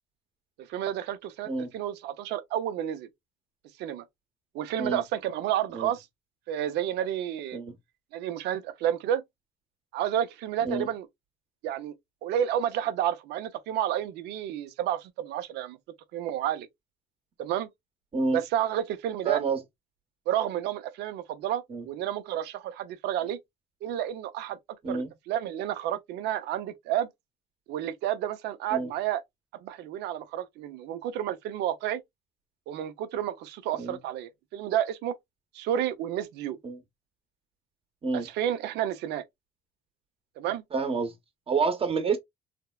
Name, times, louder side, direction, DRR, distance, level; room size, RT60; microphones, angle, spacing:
voice 1, 0.6-3.1 3.8-4.0 4.5-6.0 6.5-7.6 8.1-9.2 9.9-11.1 11.6-11.9 12.2-15.8 16.1-16.7 17.4-17.7 18.3-19.4 20.3-23.4 23.8-24.6 24.9-27.1 27.7-29.2 29.6-32.0 32.7-35.2 35.5-36.6 38.1-39.2 40.4-40.6, right 11 dB, 85° right, 0.6 m, -30 dB
voice 2, 19.2-19.6 21.7-21.8 24.8-25.1 28.7-28.9 33.8-34.0 36.6-36.8 38.0-38.3 40.7-41.1 41.5-42.2, right 4 dB, 35° right, 1.0 m, -28 dB
3.4 x 2.1 x 2.3 m
cardioid pair, 110°, 17 cm